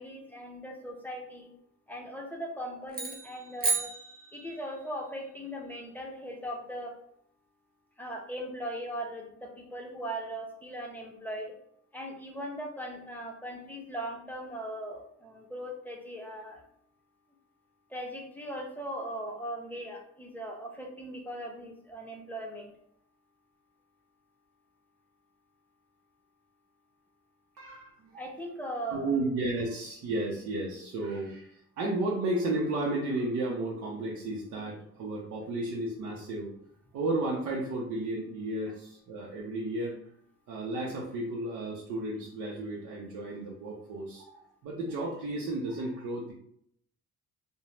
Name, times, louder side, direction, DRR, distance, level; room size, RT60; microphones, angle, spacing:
voice 1, 0.0-1.5 1.9-3.9 4.3-6.9 8.0-11.5 11.9-16.6 17.9-22.7 28.2-29.3, equal, 5° left, 0 dB, 0.6 m, -39 dB
sound 1, 2.9-4.8, right 4 dB, 30° right, 0.7 m, -33 dB
voice 2, 27.6-28.3 28.9-36.5 36.9-40.0 40.5-44.4 44.6-46.3, right 2 dB, 75° right, -4 dB, 0.7 m, -33 dB
2.6 x 2.0 x 3.1 m, 0.68 s
cardioid pair, 90°, 30 cm